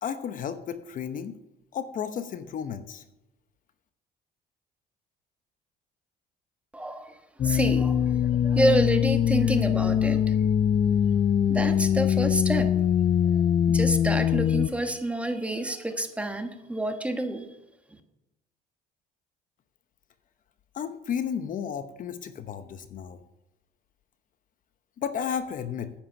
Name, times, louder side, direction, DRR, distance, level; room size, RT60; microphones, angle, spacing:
voice 1, 0.0-1.4 1.7-3.0 20.7-23.2 25.0-25.9, left 8 dB, 50° left, 10 dB, 0.9 m, -33 dB
voice 2, 6.7-7.2 7.4-10.4 11.5-12.7 13.3-17.5 17.9-18.0, right 1 dB, 5° right, 6 dB, 1.4 m, -28 dB
sound 1, 7.4-14.7, left 9 dB, 35° left, 0.4 m, -23 dB
10.0 x 8.7 x 5.6 m, 0.92 s
cardioid pair, 110°, 17 cm